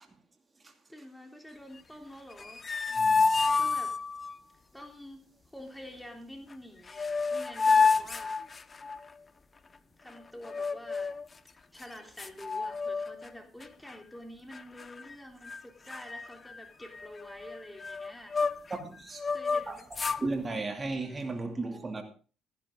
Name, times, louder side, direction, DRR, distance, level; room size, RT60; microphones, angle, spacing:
voice 1, 0.9-2.6 3.6-4.0 4.7-5.2 5.5-8.4 10.0-11.2 11.7-18.4 19.3-19.9, equal, 5° left, 3.5 m, -48 dB
sound 1, 2.3-4.3 6.5-6.6 6.9-9.1 10.4-11.3 11.8-11.9 12.2-13.3 13.6-13.9 14.5-15.1 15.4-15.6 15.9-18.8 19.2-20.2, left 4 dB, 35° left, 0.9 m, -29 dB
voice 2, 2.9-3.3 18.7-19.2 19.7-19.8 20.2-22.0, right 3 dB, 30° right, 2.5 m, -35 dB
14.0 x 12.5 x 3.8 m
hypercardioid pair, 55°, 0 cm